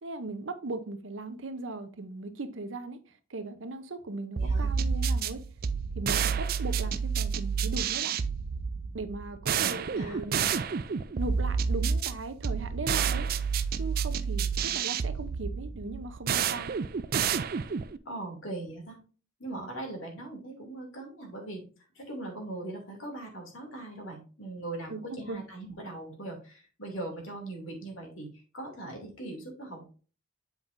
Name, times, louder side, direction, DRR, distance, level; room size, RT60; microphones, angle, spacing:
voice 1, 0.0-3.0 3.3-5.4 5.9-8.2 8.9-10.5 11.2-13.3 13.8-16.7 24.9-25.4, right 2 dB, 70° right, 0.8 m, -38 dB
voice 2, 4.4-4.7 9.5-10.2 18.0-19.0 19.4-21.6 21.9-29.9, right 2 dB, 85° left, 2.7 m, -40 dB
sound 1, 4.4-18.0, right 6 dB, 45° right, 0.4 m, -29 dB
8.1 x 5.5 x 2.6 m
head